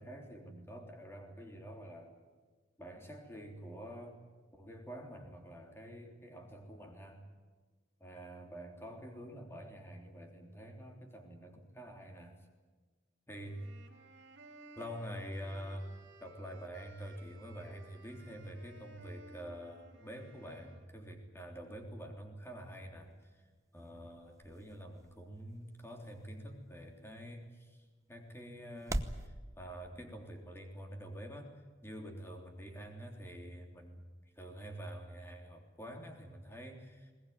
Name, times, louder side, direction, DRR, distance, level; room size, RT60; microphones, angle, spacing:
voice 1, 0.0-2.1 2.8-4.2 4.5-7.3 8.0-12.4 13.3-13.7 14.8-23.4 23.7-34.1 34.4-37.1, equal, 15° left, 3 dB, 3.4 m, -47 dB
sound 1, 13.4-20.9, right 2 dB, 65° right, 3.7 m, -57 dB
sound 2, 23.0-29.3, right 1 dB, 15° right, 0.9 m, -45 dB
21.0 x 20.0 x 9.5 m, 1.3 s
head